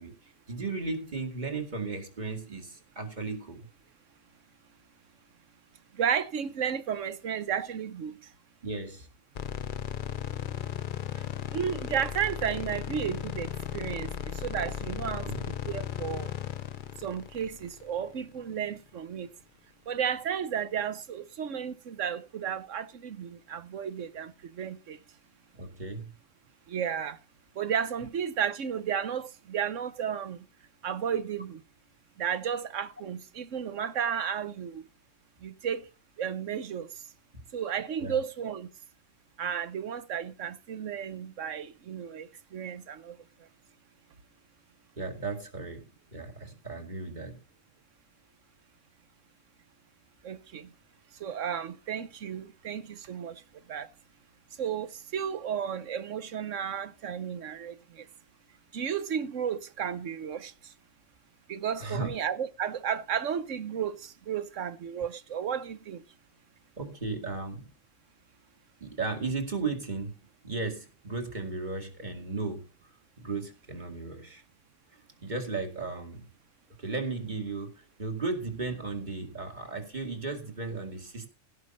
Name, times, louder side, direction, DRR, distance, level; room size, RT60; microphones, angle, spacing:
voice 1, 0.0-3.7 8.6-9.1 15.2-15.5 25.5-26.1 38.0-38.2 45.0-47.4 61.8-62.2 66.8-67.7 68.8-70.2 70.4-72.6 73.2-74.4 74.9-76.3 76.8-81.3, right 3 dB, 35° right, 2.3 m, -35 dB
voice 2, 6.0-8.1 11.5-14.1 14.4-16.3 17.0-19.3 19.9-25.0 26.7-27.2 27.6-30.4 30.8-31.6 32.2-34.8 35.4-35.8 36.2-36.9 37.5-38.7 39.4-43.2 50.2-50.7 51.2-53.4 53.7-53.9 54.6-58.0 58.7-60.5 61.5-66.0, right 8 dB, 80° right, 1.3 m, -33 dB
sound 1, 9.3-18.5, left 9 dB, 50° left, 0.7 m, -36 dB
16.5 x 5.9 x 5.4 m
omnidirectional pair, 1.3 m